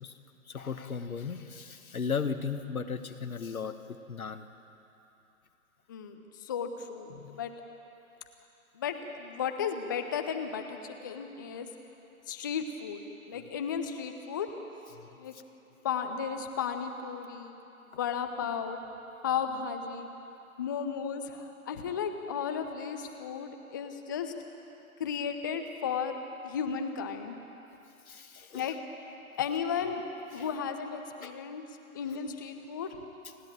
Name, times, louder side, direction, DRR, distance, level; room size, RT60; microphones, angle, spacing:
voice 1, 0.5-3.7 4.1-4.4 7.1-7.4 13.4-13.5 28.1-28.8 30.4-30.5 31.2-31.3 32.1-32.2, left 5 dB, 75° left, 9 dB, 1.4 m, -36 dB
voice 2, 5.9-7.5 8.8-11.7 12.3-13.0 13.3-14.5 15.2-15.3 15.8-17.6 17.9-18.8 19.2-20.1 20.6-24.3 25.0-26.2 26.4-27.4 28.5-28.8 29.4-30.0 30.3-31.6 31.9-33.0, left 7 dB, 15° left, 6 dB, 0.5 m, -34 dB
29.0 x 10.5 x 9.0 m, 3.0 s
figure-of-eight pair, 125°, 43 cm